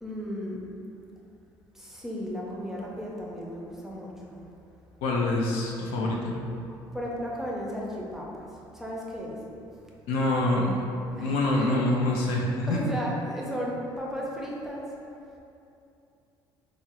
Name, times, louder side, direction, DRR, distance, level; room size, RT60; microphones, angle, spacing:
voice 1, 0.0-0.6 1.7-4.4 6.9-8.5 8.7-9.4 11.2-11.7 12.7-14.9, equal, 5° right, -4 dB, 0.6 m, -35 dB
voice 2, 5.0-6.3 10.1-10.8 11.2-12.8, left 2 dB, 85° left, -2 dB, 0.5 m, -25 dB
3.6 x 2.0 x 2.9 m, 2.7 s
supercardioid pair, 80°, 10 cm